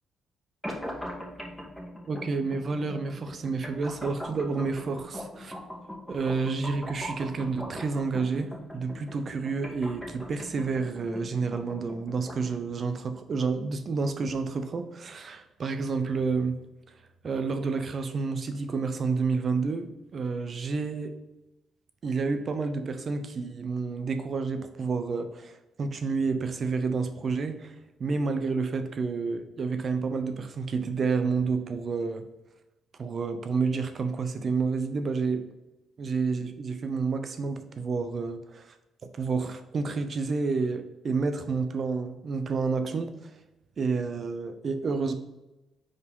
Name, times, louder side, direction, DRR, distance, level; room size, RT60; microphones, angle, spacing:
Wet synth sequence, 0.6-12.6, equal, 5° left, 1.6 m, -41 dB
voice 1, 2.1-5.5 6.1-16.6 17.2-21.2 22.0-27.7 28.0-32.3 33.0-35.5 36.0-38.7 39.1-43.3 43.8-45.1, right 4 dB, 45° right, 8 dB, 0.8 m, -29 dB
5.0 x 4.2 x 5.3 m, 0.97 s
cardioid pair, 90°, 0 cm